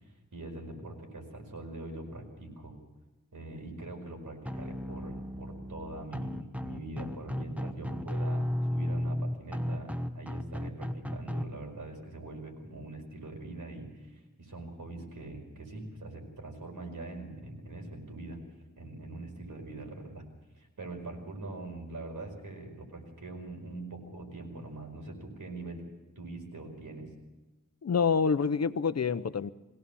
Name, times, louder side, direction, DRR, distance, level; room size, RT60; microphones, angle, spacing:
voice 1, 0.3-2.8 3.3-18.4 18.8-20.3 20.6-25.8 26.2-27.1, right 2 dB, 85° right, 2 dB, 5.1 m, -43 dB
sound 1, 4.5-11.4, equal, 5° right, 1.1 m, -34 dB
voice 2, 27.8-29.5, left 5 dB, 55° left, 14 dB, 0.8 m, -27 dB
21.5 x 17.5 x 7.0 m, 1.1 s
wide cardioid pair, 85°, 31 cm